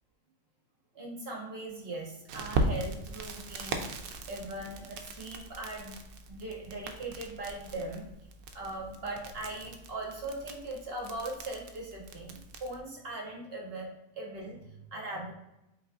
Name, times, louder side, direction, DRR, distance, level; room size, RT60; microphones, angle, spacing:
voice 1, 0.9-3.9 4.3-5.9 6.3-8.1 8.5-13.9 14.1-15.3, right 2 dB, 45° right, -2 dB, 1.2 m, -40 dB
Crackle, 2.3-12.8, right 2 dB, 80° right, 1.0 m, -39 dB
4.7 x 4.2 x 2.6 m, 0.91 s
omnidirectional pair, 1.5 m